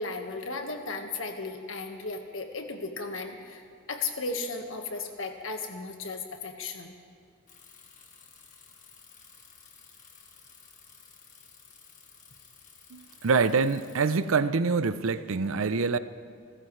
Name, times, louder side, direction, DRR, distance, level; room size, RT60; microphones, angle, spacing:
voice 1, 0.0-3.6 3.9-6.9, left 3 dB, 70° left, 4 dB, 1.5 m, -35 dB
Bicycle, 7.5-14.2, left 6 dB, 35° left, 1.9 m, -54 dB
voice 2, 12.9-16.0, right 4 dB, 80° right, 14 dB, 0.6 m, -25 dB
29.0 x 14.0 x 3.2 m, 2.4 s
head